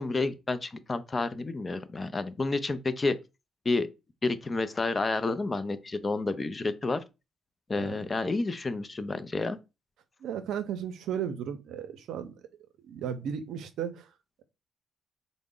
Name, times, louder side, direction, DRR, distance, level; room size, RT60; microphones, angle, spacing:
voice 1, 0.0-3.2 3.7-3.9 4.2-7.0 7.7-9.6, left 3 dB, 30° left, 0.4 m, -30 dB
voice 2, 10.2-12.3 12.9-14.1, right 8 dB, 80° right, 0.5 m, -34 dB
3.7 x 2.0 x 3.6 m
cardioid pair, 90°, 0 cm